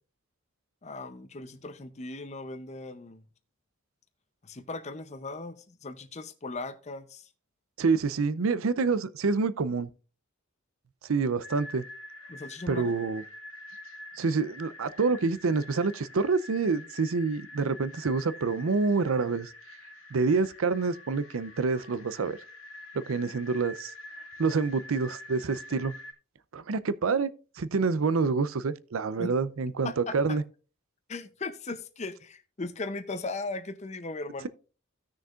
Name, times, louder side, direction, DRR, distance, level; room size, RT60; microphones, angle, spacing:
voice 1, 0.8-3.2 4.4-7.3 12.3-12.9 29.2-29.3 29.8-30.4 31.1-34.5, left 3 dB, 35° left, 0.6 m, -38 dB
voice 2, 7.8-9.9 11.1-11.8 12.7-13.2 14.2-19.5 20.1-22.4 23.1-23.9 24.4-25.9 26.5-27.3 27.6-30.4, right 4 dB, 90° right, 0.6 m, -27 dB
sound 1, 11.4-26.1, left 2 dB, 90° left, 2.1 m, -47 dB
16.5 x 6.4 x 2.4 m
head